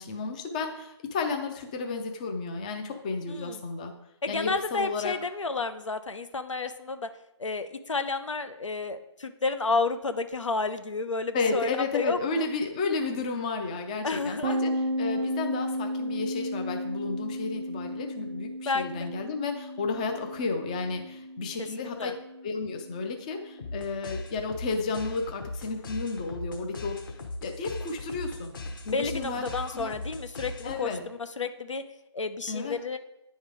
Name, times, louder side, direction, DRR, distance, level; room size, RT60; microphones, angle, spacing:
voice 1, 0.0-3.9 4.3-5.2 11.3-22.1 22.4-27.1 27.4-28.5 28.9-29.9 30.6-31.0 32.5-32.8, left 4 dB, 15° left, 4 dB, 0.4 m, -32 dB
voice 2, 3.3-3.6 4.2-7.1 7.4-12.4 14.0-14.6 18.6-19.1 21.6-22.1 28.8-31.8 32.1-33.0, left 3 dB, 90° left, 9 dB, 0.7 m, -31 dB
sound 1, 14.4-23.9, equal, 55° right, 0.6 m, -34 dB
sound 2, 23.6-31.0, left 2 dB, 45° left, 1.1 m, -39 dB
9.7 x 3.6 x 4.8 m, 0.88 s
figure-of-eight pair, 155°, 15 cm